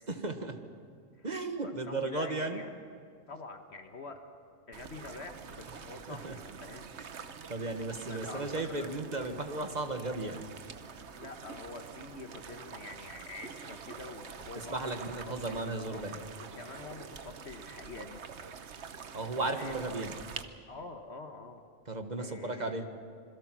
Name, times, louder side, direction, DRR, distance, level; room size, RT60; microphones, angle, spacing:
voice 1, 0.1-0.6 1.2-2.6 6.1-6.3 7.5-10.5 14.5-16.2 19.1-20.1 21.9-22.9, right 2 dB, 35° right, 6 dB, 1.5 m, -35 dB
voice 2, 1.6-2.7 3.3-4.2 4.7-6.9 7.2-7.4 8.1-8.9 11.1-15.6 15.9-18.2 19.5-19.8 20.7-21.6 22.2-22.8, left 3 dB, 55° left, 5 dB, 1.5 m, -46 dB
sound 1, 4.7-20.4, right 6 dB, 60° right, 1.2 m, -46 dB
26.5 x 21.5 x 6.1 m, 2.2 s
omnidirectional pair, 1.4 m